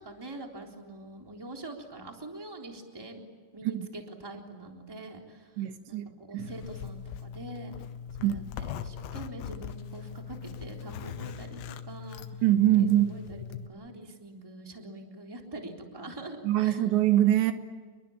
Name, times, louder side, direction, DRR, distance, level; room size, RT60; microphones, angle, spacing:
voice 1, 0.0-3.2 3.5-7.8 8.2-12.4 12.7-17.0, right 2 dB, 5° right, 2 dB, 3.0 m, -44 dB
voice 2, 5.6-6.1 6.3-6.5 8.2-8.4 12.4-13.1 16.5-17.5, right 13 dB, 80° right, 8 dB, 3.8 m, -23 dB
Zipper (clothing), 6.4-13.7, left 8 dB, 80° left, 3.3 m, -40 dB
30.0 x 22.5 x 8.8 m, 1.5 s
omnidirectional pair, 5.0 m